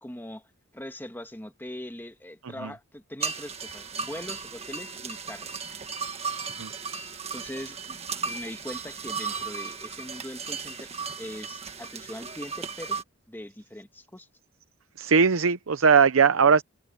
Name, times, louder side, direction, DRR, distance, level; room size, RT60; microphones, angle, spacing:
voice 1, 0.0-0.5 0.7-5.6 7.3-10.9 11.2-13.0 13.3-14.3, left 1 dB, 10° left, 1.5 m, -41 dB
sound 1, 3.2-13.0, right 5 dB, 30° right, 1.6 m, -35 dB
voice 2, 15.0-16.6, right 6 dB, 75° right, 0.7 m, -19 dB
head